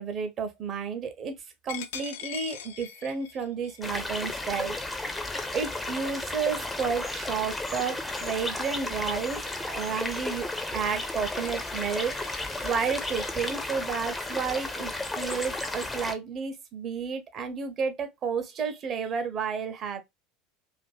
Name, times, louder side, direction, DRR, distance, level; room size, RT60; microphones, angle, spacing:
voice 1, 0.0-1.3 1.6-5.1 5.5-20.0, right 6 dB, 40° right, 0.7 m, -32 dB
Coin (dropping), 1.7-7.1 7.6-7.8 8.2-13.3, left 9 dB, 65° left, 0.4 m, -45 dB
sound 1, 3.8-16.1, left 2 dB, 10° left, 0.5 m, -33 dB
2.6 x 2.6 x 2.3 m
figure-of-eight pair, 75°, 0 cm